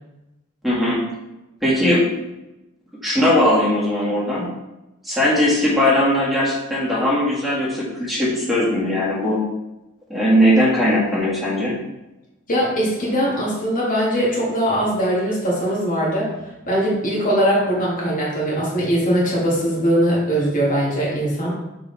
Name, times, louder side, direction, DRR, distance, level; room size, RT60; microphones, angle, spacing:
voice 1, 0.6-1.0 1.6-2.1 3.0-4.5 5.0-9.4 10.1-11.7, left 1 dB, ahead, -7 dB, 1.9 m, -19 dB
voice 2, 12.5-16.3 16.7-21.5, equal, 40° left, -6 dB, 2.1 m, -21 dB
6.4 x 4.5 x 3.4 m, 0.97 s
head